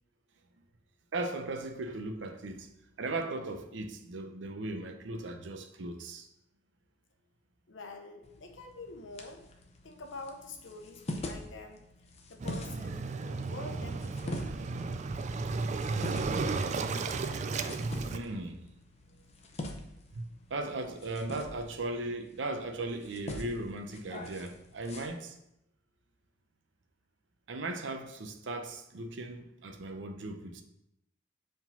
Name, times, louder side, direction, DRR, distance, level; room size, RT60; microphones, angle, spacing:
voice 1, 1.1-2.7 3.0-6.3 18.1-18.6 20.1-25.4 27.5-30.6, right 2 dB, 75° right, 0.7 m, -37 dB
voice 2, 7.7-9.4 9.8-11.9 12.3-14.5, left 3 dB, 85° left, 0.8 m, -46 dB
sound 1, 8.2-25.1, left 1 dB, 35° left, 0.7 m, -45 dB
Waves surf, 12.4-18.2, right 4 dB, 40° right, 0.3 m, -34 dB
4.9 x 3.8 x 5.3 m
head